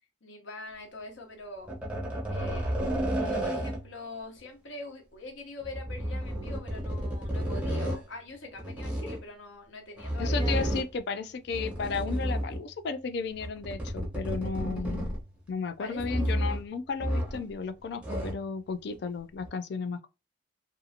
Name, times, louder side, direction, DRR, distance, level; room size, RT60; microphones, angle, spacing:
voice 1, 0.2-1.7 2.3-2.8 3.2-10.7 14.7-15.0 15.8-16.6, left 2 dB, 75° left, 0.9 m, -43 dB
sound 1, 1.7-4.0 5.6-8.0 8.6-9.2 10.0-11.0 11.5-12.7 13.3-15.4 16.0-16.7 17.0-17.5 17.8-18.5 19.4-19.5, equal, 5° right, 0.6 m, -31 dB
voice 2, 10.2-15.1 15.5-20.1, left 5 dB, 55° left, 0.3 m, -34 dB
2.6 x 2.4 x 2.6 m
head